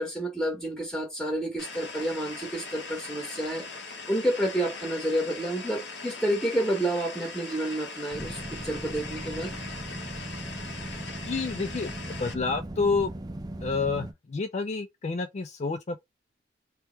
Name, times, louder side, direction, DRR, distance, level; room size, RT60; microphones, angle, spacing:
voice 1, 0.0-3.6 4.1-9.6, right 1 dB, ahead, 1.3 m, -29 dB
sound 1, 1.6-12.3, left 4 dB, 80° left, 1.3 m, -40 dB
sound 2, 8.1-14.1, right 1 dB, 25° right, 0.5 m, -38 dB
voice 2, 11.2-13.1 13.6-16.0, left 4 dB, 40° left, 0.4 m, -29 dB
3.4 x 2.9 x 4.4 m
head